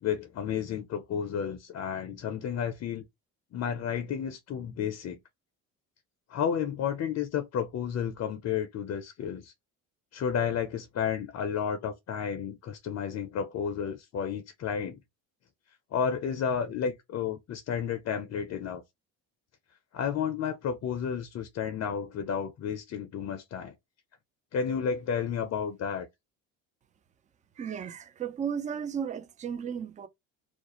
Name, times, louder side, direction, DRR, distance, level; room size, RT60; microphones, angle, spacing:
voice 1, 0.0-3.0 3.5-5.2 6.3-9.5 10.1-15.0 15.9-18.8 19.9-23.7 24.5-26.1, left 7 dB, 40° left, 0.5 m, -32 dB
voice 2, 27.6-30.1, right 7 dB, 20° right, 0.3 m, -34 dB
2.4 x 2.0 x 2.9 m
supercardioid pair, 80°, 39 cm